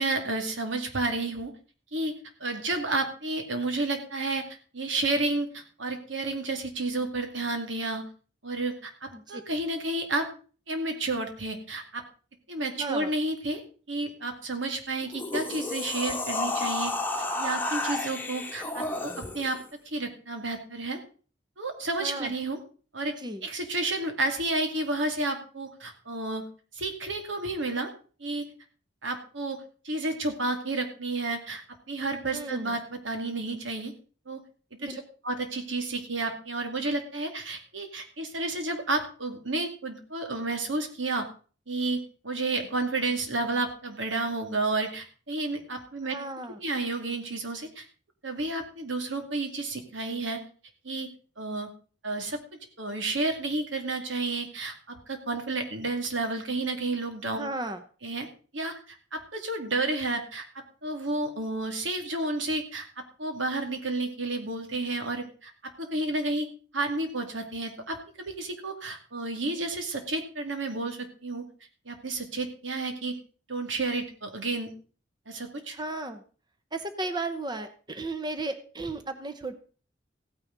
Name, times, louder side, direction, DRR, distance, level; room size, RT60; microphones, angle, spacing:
voice 1, 0.0-1.5 1.9-2.1 2.4-4.4 4.7-8.0 8.4-10.3 10.7-12.0 12.5-13.6 13.9-16.9 17.4-19.6 19.9-21.0 21.6-22.6 22.9-23.1 23.4-26.4 26.7-27.9 28.2-28.4 29.0-31.6 31.9-33.9 34.3-34.4 34.8-41.3 41.7-46.2 46.6-47.9 48.2-50.4 50.8-51.1 51.4-51.7 52.0-52.4 52.8-57.4 58.0-58.3 58.5-62.9 63.2-65.5 65.8-66.5 66.7-71.4 71.9-73.2 73.5-74.7 75.3-75.8, right 2 dB, 85° right, 5 dB, 2.5 m, -31 dB
voice 2, 12.8-13.1 22.0-22.3 23.2-23.5 32.3-32.8 34.9-35.0 46.1-46.6 57.3-57.8 75.7-76.2 76.7-79.5, right 2 dB, 25° right, 9 dB, 0.9 m, -35 dB
sound 1, 15.0-19.6, left 2 dB, 10° left, 1.4 m, -31 dB
15.5 x 9.7 x 4.0 m, 0.39 s
head